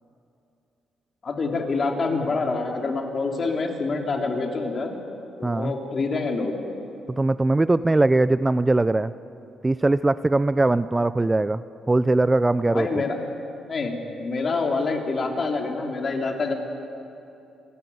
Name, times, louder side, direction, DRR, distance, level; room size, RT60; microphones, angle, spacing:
voice 1, 1.2-5.0 5.4-6.5 12.6-13.2 13.7-13.9 14.2-16.5, left 3 dB, 40° left, 3 dB, 3.1 m, -26 dB
voice 2, 5.4-5.7 7.1-9.1 9.6-11.6 11.9-12.9, right 2 dB, 15° right, 15 dB, 0.4 m, -21 dB
28.5 x 12.5 x 9.5 m, 2.8 s
cardioid pair, 105°, 0 cm